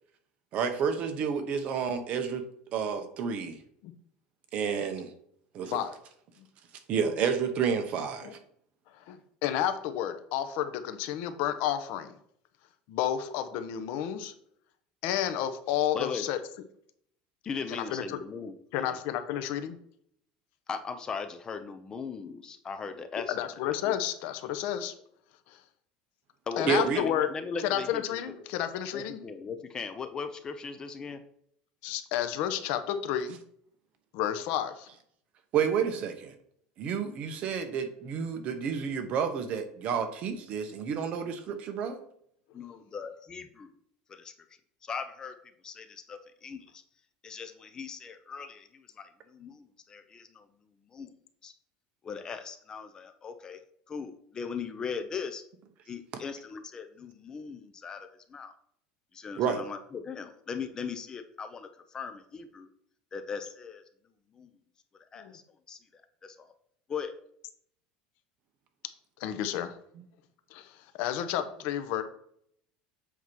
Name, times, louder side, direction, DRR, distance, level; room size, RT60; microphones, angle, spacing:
voice 1, 0.5-2.4 2.7-3.6 4.5-5.1 5.5-5.8 6.9-8.4 26.7-27.0 35.5-36.3 36.8-42.0 56.1-56.2 59.4-59.6, right 6 dB, 40° right, 7 dB, 1.0 m, -30 dB
voice 2, 5.6-6.0 8.2-8.3 9.1-12.1 12.9-14.3 15.0-16.4 17.7-18.2 18.7-19.8 23.3-24.9 25.5-25.6 26.6-27.3 27.6-29.2 31.8-33.4 34.1-34.9 65.2-65.3 69.2-69.7 70.5-72.0, left 10 dB, 65° left, 10 dB, 0.8 m, -31 dB
voice 3, 15.9-16.3 17.4-19.0 20.7-23.9 26.5-28.0 28.3-28.5 28.9-31.2 42.5-43.7 44.1-44.3 44.8-45.4 45.6-46.8 47.2-50.5 50.9-51.1 51.4-51.5 52.0-53.6 53.9-55.4 55.9-58.5 59.1-62.7 63.1-63.8 64.3-64.5 65.1-65.4 65.7-66.5 66.9-67.1, left 5 dB, 25° left, 9 dB, 0.6 m, -39 dB
8.1 x 3.0 x 6.1 m, 0.67 s
cardioid pair, 150°, 3 cm